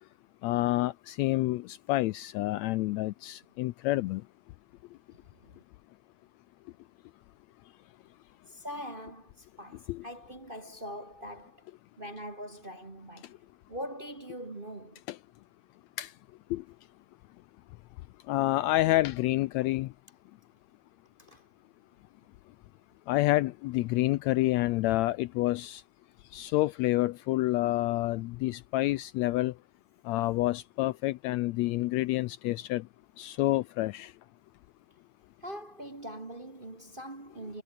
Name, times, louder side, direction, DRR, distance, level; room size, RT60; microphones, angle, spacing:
voice 1, 0.4-4.2 9.9-10.0 15.1-15.2 16.0-16.1 16.5-16.6 18.3-19.9 23.1-25.8 26.3-29.5 30.0-32.9 33.2-34.1, left 17 dB, 85° left, 1.5 m, -28 dB
voice 2, 5.1-5.6 8.5-11.7 12.0-13.4 13.7-15.0 21.2-21.5 35.4-37.6, equal, 25° right, 1.2 m, -42 dB
omnidirectional pair, 3.7 m